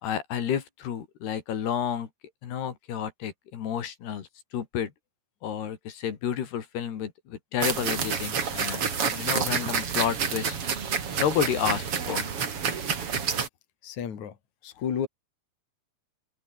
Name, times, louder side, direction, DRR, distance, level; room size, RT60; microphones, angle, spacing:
voice 1, 0.0-2.1 2.4-4.3 4.5-4.9 5.4-10.6 11.2-12.3, left 9 dB, 80° left, 4.7 m, -30 dB
sound 1, 7.6-13.5, right 6 dB, 40° right, 3.1 m, -28 dB
voice 2, 13.8-15.1, left 8 dB, 50° left, 3.9 m, -32 dB
omnidirectional pair, 4.6 m